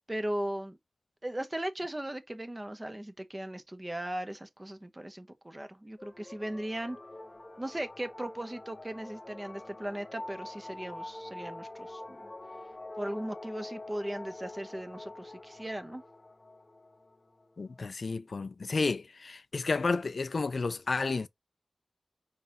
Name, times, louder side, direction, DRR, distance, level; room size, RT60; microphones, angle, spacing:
voice 1, 0.1-0.8 1.2-7.0 7.6-12.3 13.0-16.0, right 1 dB, 20° right, 0.8 m, -38 dB
sound 1, 6.0-17.8, left 2 dB, 30° left, 0.7 m, -46 dB
voice 2, 17.6-21.3, left 4 dB, 60° left, 0.3 m, -31 dB
5.1 x 3.9 x 2.6 m
wide cardioid pair, 80°, 0 cm